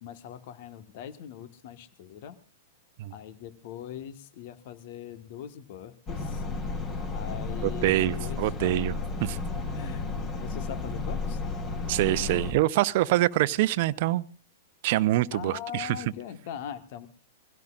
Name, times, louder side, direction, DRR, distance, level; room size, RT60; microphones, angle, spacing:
voice 1, 0.0-2.4 3.1-6.4 7.1-8.7 9.7-10.1 10.4-11.4 15.3-17.1, left 9 dB, 55° left, 10 dB, 1.5 m, -41 dB
sound 1, 6.1-12.5, left 3 dB, 30° left, 3.2 m, -33 dB
voice 2, 7.6-9.4 11.9-14.3 14.8-16.0, right 16 dB, 55° right, 16 dB, 0.7 m, -25 dB
24.5 x 16.5 x 2.5 m, 0.40 s
hypercardioid pair, 110°, 0 cm